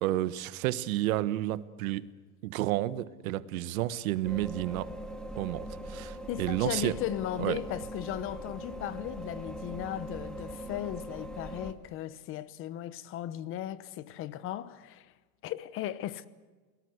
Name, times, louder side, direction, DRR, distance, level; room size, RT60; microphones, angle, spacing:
voice 1, 0.0-2.1 2.4-4.9 5.4-7.0 7.4-7.6, right 15 dB, 70° right, 1.4 m, -31 dB
sound 1, 4.2-11.7, right 1 dB, ahead, 2.0 m, -41 dB
voice 2, 6.3-15.1 15.4-16.3, left 12 dB, 30° left, 1.0 m, -36 dB
29.5 x 19.0 x 8.0 m
supercardioid pair, 165°, 43 cm